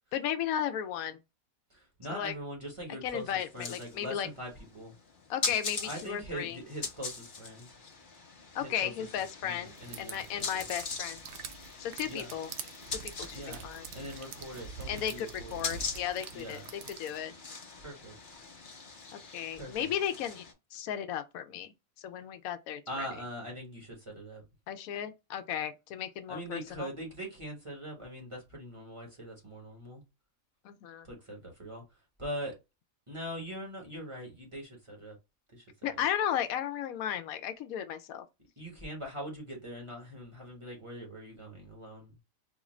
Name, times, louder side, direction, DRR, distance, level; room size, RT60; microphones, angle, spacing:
voice 1, 0.1-1.2 2.1-2.3 3.0-4.3 5.3-6.6 8.5-11.2 11.8-12.5 12.9-13.8 14.9-17.3 19.1-20.4 20.7-21.7 22.0-23.1 24.7-26.9 30.6-31.1 35.8-38.3, left 9 dB, 85° left, 1.0 m, -35 dB
voice 2, 1.7-4.9 5.8-7.7 8.6-8.9 9.4-10.6 12.0-12.3 13.3-13.6 13.9-15.8 16.3-16.6 17.8-18.4 19.5-19.9 22.9-24.4 26.3-30.0 31.0-31.8 32.2-32.6 33.1-35.2 35.5-35.6 35.9-36.0 38.6-42.2, equal, 25° right, 1.3 m, -42 dB
sound 1, 3.2-20.5, left 5 dB, 45° left, 0.9 m, -42 dB
sound 2, 9.7-17.2, right 7 dB, 65° right, 0.8 m, -46 dB
4.2 x 2.4 x 3.1 m
omnidirectional pair, 1.4 m